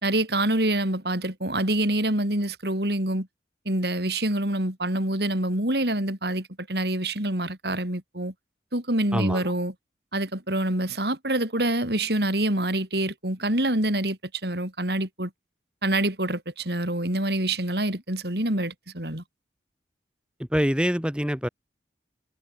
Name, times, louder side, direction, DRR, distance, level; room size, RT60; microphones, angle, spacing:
voice 1, 0.0-3.3 3.7-8.3 8.7-9.7 10.1-15.3 15.8-19.2, right 1 dB, 65° right, 5.3 m, -26 dB
voice 2, 9.1-9.4 20.5-21.5, equal, 5° right, 3.1 m, -24 dB
head